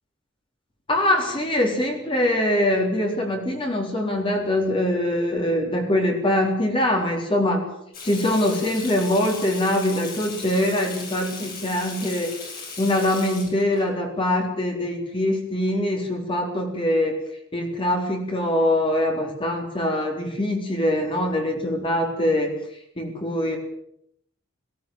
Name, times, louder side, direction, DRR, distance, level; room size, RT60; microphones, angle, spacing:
voice 1, 0.9-7.7 8.0-12.3 12.8-17.2 17.5-22.5 23.0-23.6, left 1 dB, 25° left, 2 dB, 4.0 m, -23 dB
Water tap faucet / Sink (filling or washing), 7.9-13.8, left 4 dB, 45° left, 8.0 m, -37 dB
18.5 x 17.0 x 9.2 m, 0.72 s
head